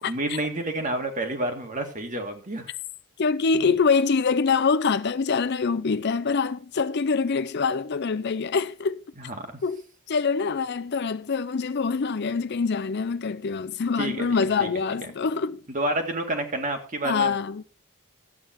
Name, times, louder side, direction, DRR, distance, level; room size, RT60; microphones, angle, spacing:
voice 1, 0.0-2.7 9.2-9.5 14.0-14.3 14.6-14.7 15.7-17.3, right 1 dB, 35° right, 2.0 m, -29 dB
voice 2, 3.2-9.0 9.6-9.8 10.1-15.6 17.0-17.6, left 5 dB, 50° left, 0.5 m, -25 dB
13.0 x 8.6 x 4.5 m
head